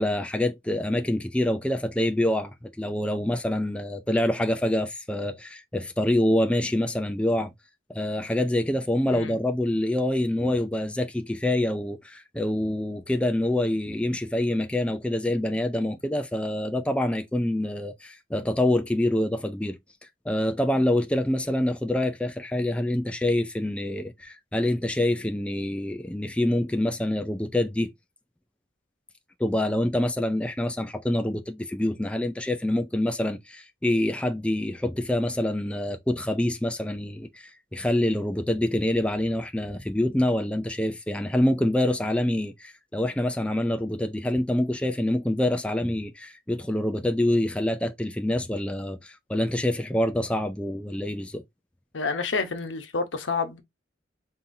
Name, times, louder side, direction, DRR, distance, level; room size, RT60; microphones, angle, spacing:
voice 1, 0.0-7.5 7.9-27.9 29.4-51.4, left 1 dB, 5° left, 0.3 m, -26 dB
voice 2, 51.9-53.6, left 4 dB, 80° left, 0.9 m, -29 dB
5.5 x 2.7 x 2.6 m
head